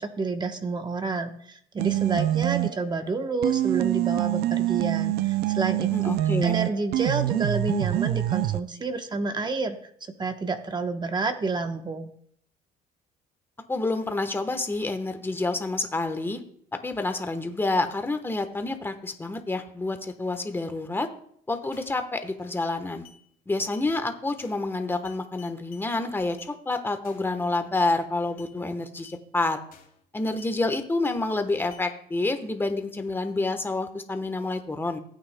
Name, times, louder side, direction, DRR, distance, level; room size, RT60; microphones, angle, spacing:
voice 1, 0.0-6.1 6.4-9.8 10.2-12.1, right 3 dB, 25° right, 7 dB, 1.0 m, -29 dB
sound 1, 1.8-2.9 3.4-8.6, right 15 dB, 75° right, 0.4 m, -25 dB
voice 2, 5.9-6.6 13.7-16.4 16.8-21.1 21.5-23.0 23.5-29.6 30.1-35.0, left 2 dB, 15° left, 7 dB, 1.1 m, -28 dB
sound 2, 21.7-22.0 22.4-22.7 23.0-23.2 23.7-23.9 24.4-24.7 25.0-25.9 26.4-26.5 27.0-27.3 27.7-28.0 28.4-28.5 29.0-29.2 29.7-30.0 30.4-31.2 31.7-31.9, left 9 dB, 60° left, 2.5 m, -53 dB
16.0 x 8.8 x 2.2 m, 0.65 s
cardioid pair, 110°, 17 cm